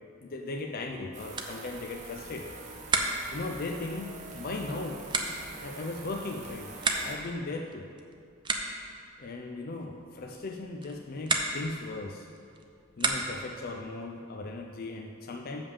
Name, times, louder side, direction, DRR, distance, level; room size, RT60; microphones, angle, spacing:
voice 1, 0.2-2.6 3.3-5.0 5.4-6.7 7.0-7.9 9.2-12.3 13.0-15.6, left 2 dB, 50° left, 2 dB, 0.5 m, -37 dB
sound 1, 1.1-7.2, right 3 dB, 40° right, 1.1 m, -45 dB
sound 2, 1.3-13.6, right 3 dB, 25° right, 0.6 m, -36 dB
7.0 x 5.3 x 7.0 m, 2.3 s
head